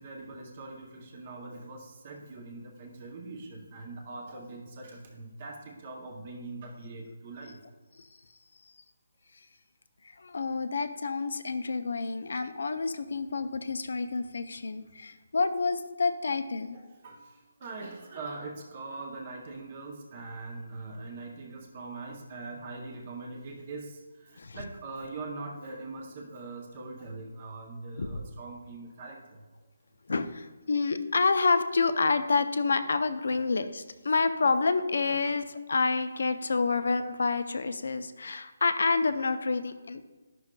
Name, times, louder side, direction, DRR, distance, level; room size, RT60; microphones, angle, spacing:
voice 1, 0.0-7.6 16.7-29.4 33.3-33.4 35.1-35.2, right 3 dB, 25° right, 1 dB, 0.6 m, -42 dB
voice 2, 10.2-16.8 24.4-24.6 28.0-28.2 30.1-40.0, left 4 dB, 55° left, 11 dB, 0.4 m, -28 dB
9.9 x 6.0 x 2.2 m, 1.2 s
hypercardioid pair, 180°, 0 cm